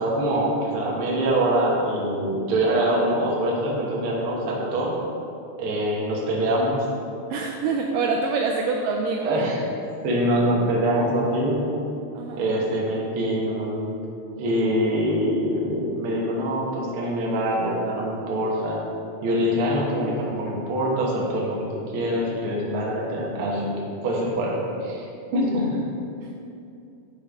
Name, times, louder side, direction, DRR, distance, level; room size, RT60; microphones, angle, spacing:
voice 1, 0.0-4.9 5.6-6.9 9.2-9.6 10.0-11.8 12.4-13.9 14.3-18.8 19.2-23.7 24.0-25.0 25.3-25.8, right 1 dB, 65° right, -3 dB, 1.4 m, -24 dB
voice 2, 7.3-9.3 12.1-12.5 26.2-26.3, right 4 dB, 80° right, 0 dB, 2.0 m, -25 dB
8.5 x 5.5 x 3.6 m, 2.6 s
omnidirectional pair, 4.1 m